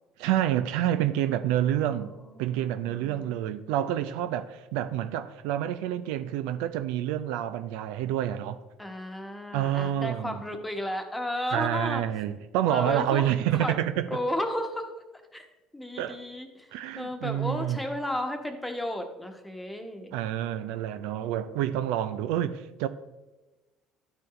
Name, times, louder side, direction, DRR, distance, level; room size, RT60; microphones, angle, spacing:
voice 1, 0.2-2.1 2.4-8.6 9.5-10.4 11.5-14.1 16.0-16.2 16.7-17.8 20.1-22.9, right 11 dB, 75° right, 0.3 m, -28 dB
voice 2, 1.8-3.5 8.8-12.0 12.7-13.2 13.5-13.7 14.1-14.9 15.3-15.4 15.7-20.1, left 1 dB, 10° left, 1.2 m, -34 dB
12.0 x 4.5 x 3.2 m
hypercardioid pair, 70°, 0 cm